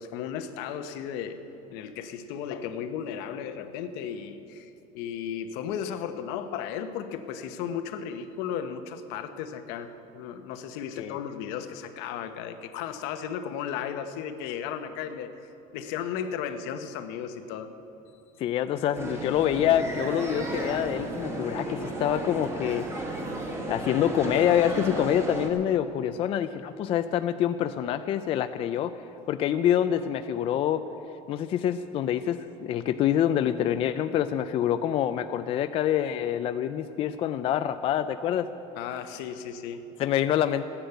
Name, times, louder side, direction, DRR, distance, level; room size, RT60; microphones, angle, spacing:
voice 1, 0.0-1.4 1.7-4.7 4.9-15.3 15.7-17.7 38.8-39.9, left 8 dB, 70° left, 8 dB, 1.0 m, -35 dB
voice 2, 18.4-22.9 23.7-30.8 31.3-38.5 40.0-40.6, left 10 dB, 35° left, 10 dB, 0.4 m, -26 dB
sound 1, 18.9-25.5, right 1 dB, 15° right, 1.6 m, -34 dB
14.0 x 10.0 x 8.1 m, 2.9 s
cardioid pair, 165°, 17 cm